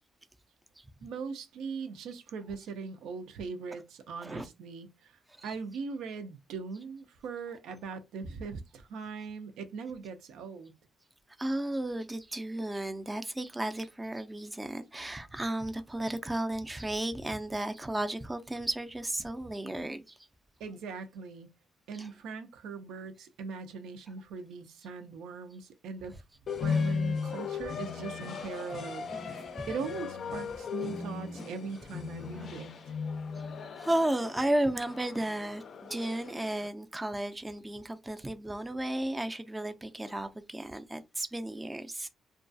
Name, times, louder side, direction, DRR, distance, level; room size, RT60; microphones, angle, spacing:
voice 1, 1.0-10.7 20.6-21.5 21.9-26.2 26.6-32.7, right 5 dB, 85° right, 0.4 m, -40 dB
voice 2, 11.4-20.2 21.9-22.1 26.6-26.9 32.4-32.5 33.8-42.1, right 1 dB, 15° right, 0.4 m, -34 dB
sound 1, 26.5-36.7, left 5 dB, 55° left, 0.4 m, -36 dB
2.3 x 2.3 x 2.5 m
cardioid pair, 90°, 0 cm